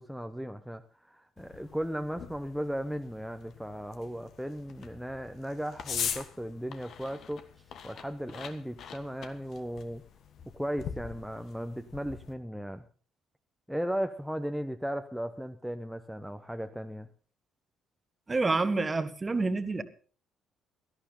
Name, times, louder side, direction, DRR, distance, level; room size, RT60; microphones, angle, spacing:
voice 1, 0.0-7.5 7.8-10.0 10.5-12.8 13.7-17.1, equal, ahead, 6 dB, 0.9 m, -36 dB
sound 1, 1.4-12.3, left 7 dB, 50° left, 1.4 m, -42 dB
voice 2, 18.3-19.8, right 3 dB, 25° right, 12 dB, 1.4 m, -28 dB
17.5 x 13.5 x 3.9 m, 0.40 s
figure-of-eight pair, 45°, 0 cm